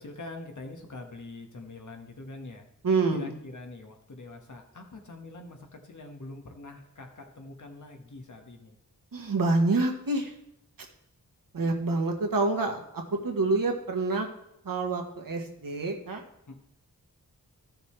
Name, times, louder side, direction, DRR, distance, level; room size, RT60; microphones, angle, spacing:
voice 1, 0.0-2.7 3.1-8.8 16.5-16.6, left 2 dB, 55° left, 3 dB, 1.6 m, -44 dB
voice 2, 2.8-3.4 9.1-10.3 11.5-14.3 14.6-16.2, right 3 dB, 65° right, 2 dB, 1.5 m, -27 dB
14.0 x 6.5 x 3.3 m, 0.83 s
wide cardioid pair, 85°, 36 cm